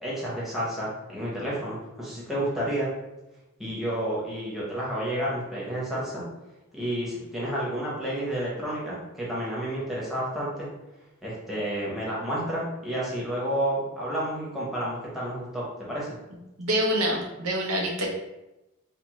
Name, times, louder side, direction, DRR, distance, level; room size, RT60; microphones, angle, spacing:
voice 1, 0.0-2.9 3.6-6.2 6.7-10.7 11.2-16.1, right 1 dB, ahead, -7 dB, 0.8 m, -30 dB
voice 2, 16.3-18.1, right 1 dB, 85° right, 0 dB, 0.7 m, -27 dB
3.3 x 2.1 x 3.0 m, 0.98 s
head